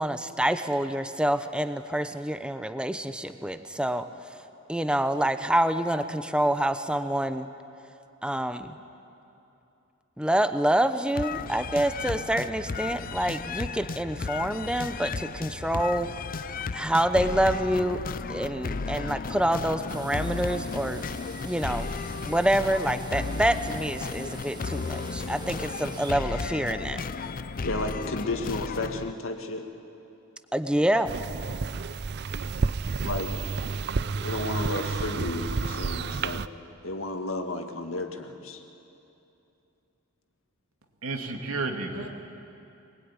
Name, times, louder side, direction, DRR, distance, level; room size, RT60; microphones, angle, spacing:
voice 1, 0.0-4.1 4.7-7.5 8.2-8.8 10.2-16.1 16.7-18.0 18.3-21.0 21.4-21.9 22.2-27.0 30.5-31.2, right 1 dB, 5° right, 10 dB, 0.9 m, -27 dB
sound 1, 11.2-29.1, left 4 dB, 40° left, 0.5 m, -34 dB
sound 2, 19.9-26.1, right 2 dB, 20° right, 1.8 m, -45 dB
voice 2, 27.6-29.7 33.0-33.4 34.2-36.5 36.8-38.6, left 2 dB, 70° left, 5 dB, 2.0 m, -32 dB
sound 3, 31.0-36.5, right 4 dB, 55° right, 0.5 m, -30 dB
voice 3, 41.0-42.1, right 3 dB, 90° right, 4 dB, 2.4 m, -31 dB
24.0 x 20.5 x 9.8 m, 2.8 s
head